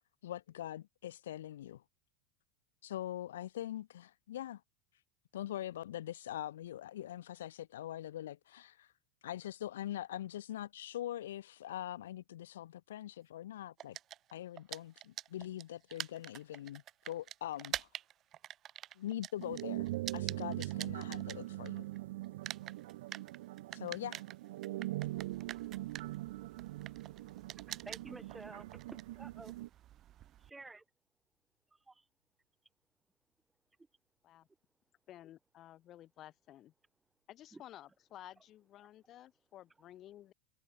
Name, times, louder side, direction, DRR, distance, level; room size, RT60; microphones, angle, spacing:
voice 1, 0.2-1.8 2.8-4.6 5.3-8.9 9.2-14.0 14.3-17.9 19.0-21.9 23.7-24.2, left 12 dB, 85° left, 2.1 m, -43 dB
sound 1, 13.8-22.0 22.2-30.5, right 12 dB, 40° right, 2.2 m, -46 dB
sound 2, 19.4-29.7, right 17 dB, 75° right, 0.6 m, -42 dB
voice 2, 27.1-29.5 30.4-30.8 31.7-32.1 37.5-37.6, right 3 dB, 10° right, 1.8 m, -52 dB
voice 3, 35.1-36.7 37.3-40.3, left 13 dB, 40° left, 6.2 m, -54 dB
supercardioid pair, 115°, 0 cm